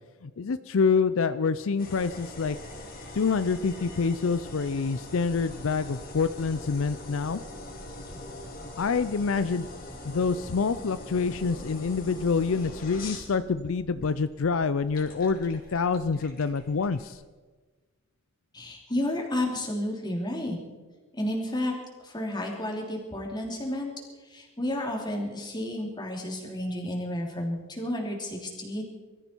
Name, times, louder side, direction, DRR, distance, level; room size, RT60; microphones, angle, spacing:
voice 1, 0.2-2.6 3.1-7.4 8.8-9.7 10.0-17.2, left 5 dB, 75° left, 13 dB, 0.5 m, -27 dB
sound 1, 1.8-17.1, left 1 dB, 45° left, 2.8 m, -43 dB
voice 2, 18.5-20.6 21.1-21.7 22.0-23.9 24.2-28.8, left 1 dB, 20° left, 0 dB, 3.1 m, -31 dB
22.5 x 14.0 x 4.6 m, 1.3 s
head